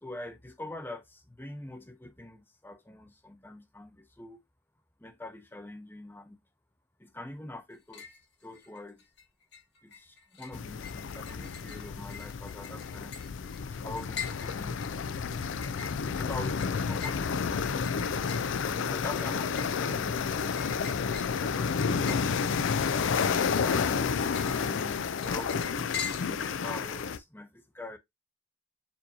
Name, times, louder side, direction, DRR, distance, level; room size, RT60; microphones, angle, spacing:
voice 1, 0.0-4.4 5.0-6.4 7.0-9.0 9.8-13.2 13.8-14.8 15.1-15.2 16.2-18.1 18.6-20.7 23.5-24.0 24.4-25.9 26.2-28.0, left 2 dB, 10° left, 0.7 m, -44 dB
sound 1, 7.7-8.2 8.5-9.2 9.5-26.6, left 7 dB, 65° left, 1.5 m, -44 dB
sound 2, 10.5-27.2, left 6 dB, 85° left, 0.4 m, -31 dB
6.9 x 2.8 x 2.7 m
head